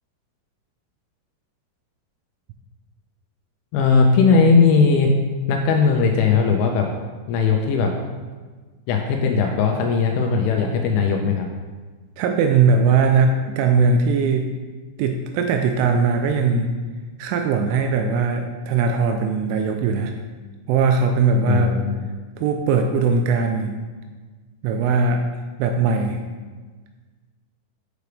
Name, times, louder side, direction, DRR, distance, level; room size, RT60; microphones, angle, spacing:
voice 1, 3.7-5.1 5.5-6.9 7.3-7.9 8.9-11.5 21.4-22.0, left 5 dB, 85° left, 2 dB, 2.8 m, -18 dB
voice 2, 12.2-14.5 15.0-16.7 17.2-20.1 20.7-21.7 22.4-23.8 24.6-25.3 25.6-26.2, right 4 dB, 85° right, 5 dB, 2.9 m, -20 dB
8.0 x 6.8 x 3.3 m, 1.4 s
omnidirectional pair, 5.9 m